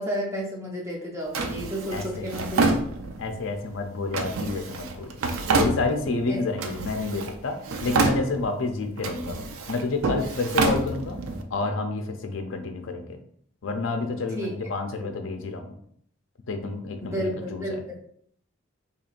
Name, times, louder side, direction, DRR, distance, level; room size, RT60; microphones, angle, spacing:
voice 1, 0.0-2.8 6.3-6.4 14.3-14.5 17.0-18.0, equal, 15° right, -2 dB, 0.6 m, -31 dB
Drawer open or close, 1.3-3.4 4.1-6.2 6.6-7.4 7.6-8.6 9.0-11.4, right 3 dB, 80° right, 0.4 m, -27 dB
voice 2, 1.9-2.3 3.2-5.1 5.5-9.4 9.7-11.2 11.5-13.2 13.6-15.7 16.5-17.8, left 3 dB, 65° left, 6 dB, 0.5 m, -29 dB
4.3 x 2.9 x 2.5 m, 0.66 s
head